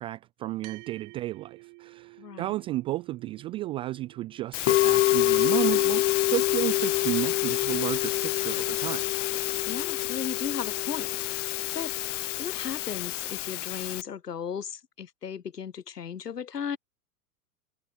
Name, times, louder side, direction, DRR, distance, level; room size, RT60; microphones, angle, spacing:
voice 1, 0.0-9.0, right 16 dB, 15° right, 0.4 m, -32 dB
sound 1, 0.6-9.3, right 35 dB, 40° right, 2.9 m, -54 dB
voice 2, 2.2-2.5 9.7-11.1 11.7-11.9 12.4-16.8, left 7 dB, 90° left, 0.7 m, -36 dB
Musical instrument, 4.5-14.0, left 16 dB, 50° left, 0.7 m, -26 dB
figure-of-eight pair, 95°, 46 cm